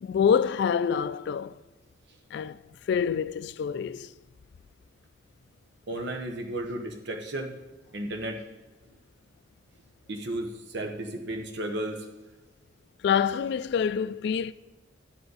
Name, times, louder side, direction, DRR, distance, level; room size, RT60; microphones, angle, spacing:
voice 1, 0.0-1.6 2.3-2.6 2.8-4.1 13.0-14.5, left 7 dB, 65° left, 0.3 m, -26 dB
voice 2, 5.9-7.6 7.9-8.4 10.1-12.1, right 1 dB, 65° right, 1.0 m, -34 dB
12.5 x 7.8 x 4.0 m
head